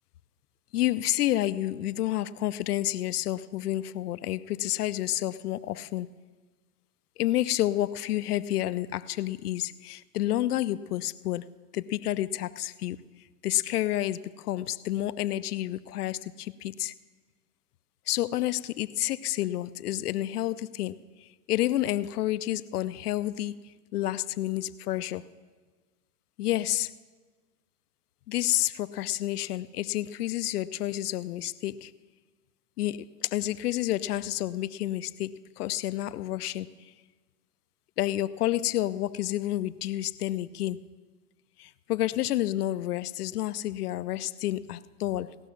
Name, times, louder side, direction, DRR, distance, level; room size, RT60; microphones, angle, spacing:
voice 1, 0.7-6.1 7.2-13.0 13.4-16.9 18.1-23.6 23.9-25.3 26.4-26.9 28.3-31.9 32.8-36.7 38.0-40.8 41.6-45.4, left 14 dB, 75° left, 15 dB, 0.6 m, -30 dB
18.0 x 6.2 x 6.9 m, 1.4 s
supercardioid pair, 160°, 46 cm